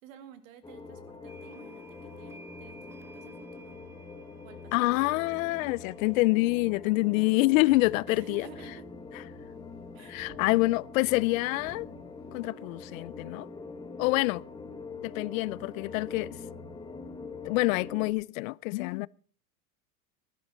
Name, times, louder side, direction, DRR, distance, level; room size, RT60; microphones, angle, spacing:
voice 1, 0.0-3.8 4.4-4.9 8.1-8.9 9.9-10.3, right 9 dB, 70° right, 2.1 m, -52 dB
sound 1, 0.6-18.1, left 4 dB, 10° left, 1.3 m, -44 dB
sound 2, 1.3-6.5, right 2 dB, 5° right, 0.7 m, -55 dB
voice 2, 4.7-8.5 10.1-11.9 12.3-13.5 14.0-14.4 15.0-16.4 17.4-19.1, left 21 dB, 70° left, 0.5 m, -26 dB
Motor vehicle (road), 7.5-10.7 11.2-11.3 11.6-13.0 13.9-14.0, right 5 dB, 40° right, 2.5 m, -59 dB
15.5 x 11.5 x 4.2 m
supercardioid pair, 140°, 42 cm